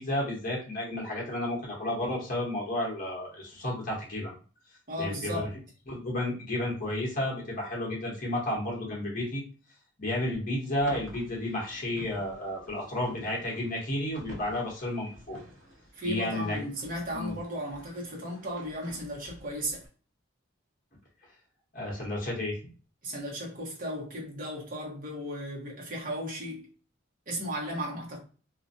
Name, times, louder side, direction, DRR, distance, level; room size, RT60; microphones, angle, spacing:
voice 1, 0.0-4.3 5.0-5.5 5.9-9.4 10.0-15.4 16.0-16.6 17.1-17.4 21.7-22.6, left 1 dB, 45° left, 0.9 m, -32 dB
voice 2, 4.9-5.5 15.9-19.8 23.0-26.7 27.3-28.2, equal, 45° right, 0.9 m, -35 dB
sound 1, 10.8-19.9, equal, 65° right, 0.7 m, -50 dB
2.4 x 2.1 x 2.6 m
head